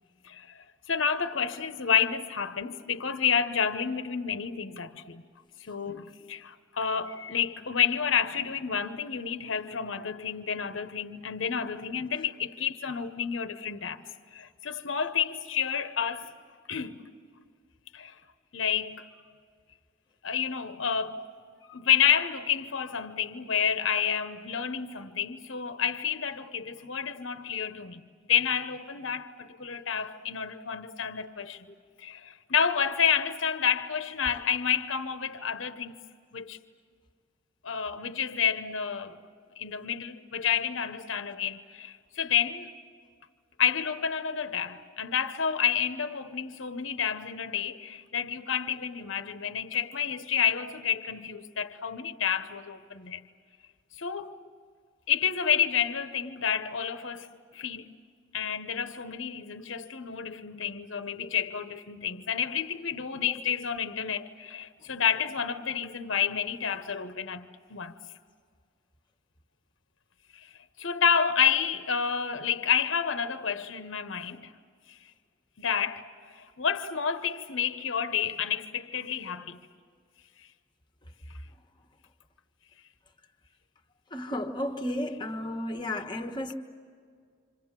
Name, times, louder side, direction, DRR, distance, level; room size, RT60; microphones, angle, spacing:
voice 1, 0.2-5.2 5.6-14.0 14.3-16.3 16.7-17.0 17.9-18.1 18.5-19.0 20.2-21.2 21.7-28.0 28.3-31.7 32.0-36.0 36.3-36.6 37.6-39.2 39.6-42.7 43.6-53.2 54.0-54.4 55.1-57.3 57.5-57.9 58.3-67.9 70.3-70.5 70.8-74.5 75.6-79.6, left 7 dB, 75° left, 1.0 m, -29 dB
voice 2, 84.1-86.5, left 1 dB, 20° left, 1.3 m, -33 dB
27.5 x 27.5 x 7.5 m
head